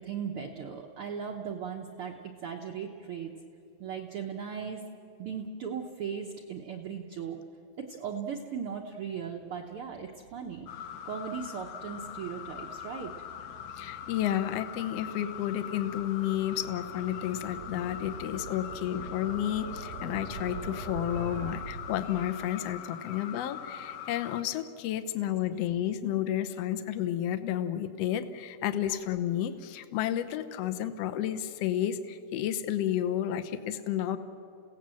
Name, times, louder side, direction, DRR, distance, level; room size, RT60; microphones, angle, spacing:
voice 1, 0.0-3.3 3.8-4.8 5.2-7.4 7.8-10.7 11.0-13.1, right 7 dB, 65° right, 1 dB, 1.4 m, -37 dB
sound 1, 9.7-22.6, right 4 dB, 80° right, 3.0 m, -45 dB
sound 2, 10.7-24.4, left 9 dB, 85° left, 2.4 m, -42 dB
voice 2, 13.8-34.2, left 11 dB, 65° left, 9 dB, 1.7 m, -31 dB
29.5 x 16.5 x 7.6 m, 2.6 s
omnidirectional pair, 3.7 m